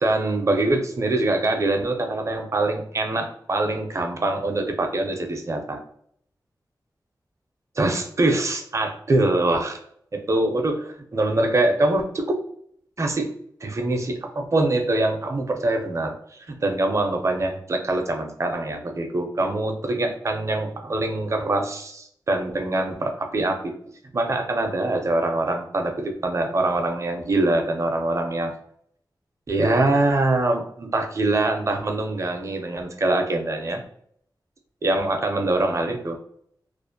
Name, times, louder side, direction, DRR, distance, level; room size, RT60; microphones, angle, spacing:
voice 1, 0.0-5.8 7.8-9.8 10.1-12.4 13.0-13.3 13.6-16.1 16.5-23.7 24.1-28.5 29.5-33.8 34.8-36.2, right 2 dB, 40° right, 4 dB, 0.4 m, -24 dB
2.4 x 2.0 x 2.6 m, 0.68 s
wide cardioid pair, 90°, 8 cm